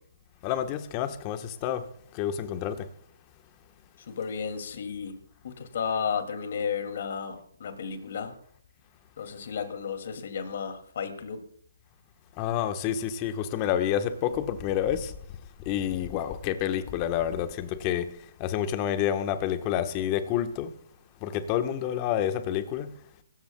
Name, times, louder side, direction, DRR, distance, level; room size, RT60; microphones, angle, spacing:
voice 1, 0.4-1.9 2.1-2.9 12.4-15.1 15.6-20.8 21.2-23.0, left 10 dB, 30° left, 1.3 m, -29 dB
voice 2, 4.0-5.2 5.4-8.3 9.2-11.4, left 6 dB, 60° left, 2.6 m, -33 dB
24.5 x 13.5 x 2.3 m
hypercardioid pair, 145°, 0 cm